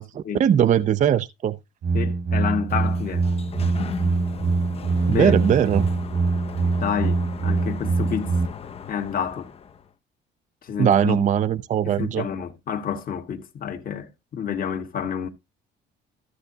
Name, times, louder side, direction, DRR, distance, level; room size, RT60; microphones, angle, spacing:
voice 1, 0.0-1.6 5.1-5.9 10.8-12.2, right 9 dB, 40° right, 0.5 m, -20 dB
sound 1, 1.8-8.5, right 4 dB, 75° right, 1.8 m, -24 dB
voice 2, 1.9-3.3 5.1-5.5 6.8-8.3 8.9-9.5 10.6-11.2 11.8-15.3, left 7 dB, 45° left, 1.5 m, -29 dB
Sliding door, 2.5-9.9, left 7 dB, 30° left, 0.6 m, -38 dB
13.5 x 7.5 x 2.8 m
cardioid pair, 115°, 20 cm